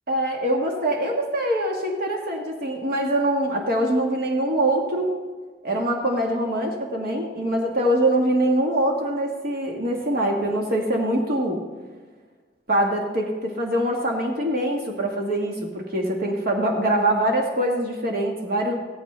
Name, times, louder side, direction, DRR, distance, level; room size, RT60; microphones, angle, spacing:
voice 1, 0.1-5.2 5.6-11.6 12.7-18.7, right 1 dB, 55° right, 1 dB, 1.4 m, -23 dB
16.5 x 15.0 x 3.2 m, 1.4 s
head